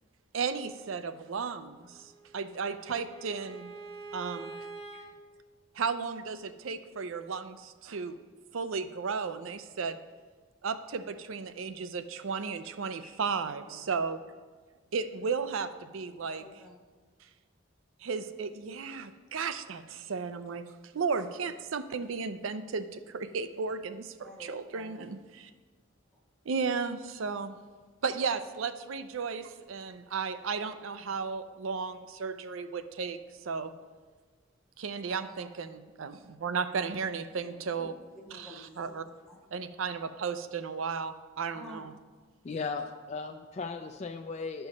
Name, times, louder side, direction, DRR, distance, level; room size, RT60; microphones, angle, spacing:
voice 1, 0.3-3.7 4.1-4.5 5.7-8.2 8.5-10.0 10.6-14.2 14.9-16.4 18.0-20.7 20.9-25.5 26.5-27.6 28.0-33.7 34.8-37.9 38.3-39.0 39.5-41.9, right 5 dB, 80° right, 11 dB, 0.5 m, -34 dB
Bowed string instrument, 1.9-5.1, right 3 dB, 50° right, 1.1 m, -45 dB
voice 2, 13.4-14.1 16.4-16.8 24.2-25.0 26.1-26.2 35.1-35.5 37.4-39.4 41.5-42.0, left 1 dB, 5° left, -2 dB, 0.9 m, -51 dB
voice 3, 42.4-44.7, left 4 dB, 35° left, 5 dB, 0.3 m, -36 dB
11.5 x 4.6 x 5.3 m, 1.4 s
head